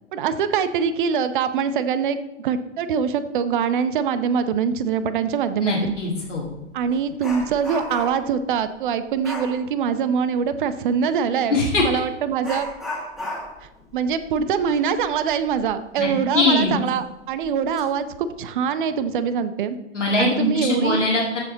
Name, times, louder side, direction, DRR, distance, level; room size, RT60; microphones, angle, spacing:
voice 1, 0.1-5.9 6.7-12.7 13.9-19.8 20.2-21.0, right 7 dB, 45° right, 12 dB, 0.7 m, -23 dB
voice 2, 5.6-6.5 11.5-11.8 16.0-16.1 16.3-16.7 19.9-21.4, left 2 dB, 80° left, -2 dB, 2.2 m, -21 dB
Dog, 5.9-6.0 6.4-8.4 9.2-9.6 11.5-11.7 12.4-15.7 16.0-16.1 16.7-16.8 17.4-17.8 18.2-18.4, left 1 dB, ahead, 1.7 m, -35 dB
13.5 x 4.9 x 3.9 m, 0.90 s
figure-of-eight pair, 110°, 36 cm